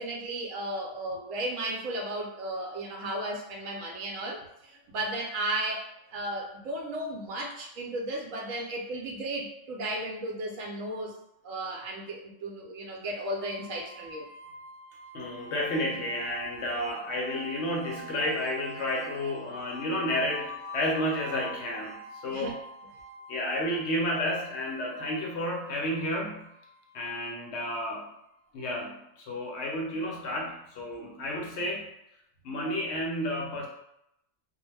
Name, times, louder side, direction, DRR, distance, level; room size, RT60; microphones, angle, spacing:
voice 1, 0.0-11.1 11.4-14.3 22.3-22.5, right 1 dB, 80° right, 0 dB, 1.0 m, -34 dB
sound 1, 13.4-28.3, right 1 dB, 60° right, 0.7 m, -45 dB
voice 2, 15.1-22.6 23.3-26.5 26.9-28.1 28.5-31.9 32.4-33.7, left 1 dB, 65° left, -1 dB, 0.7 m, -31 dB
2.3 x 2.1 x 3.1 m, 0.80 s
omnidirectional pair, 1.4 m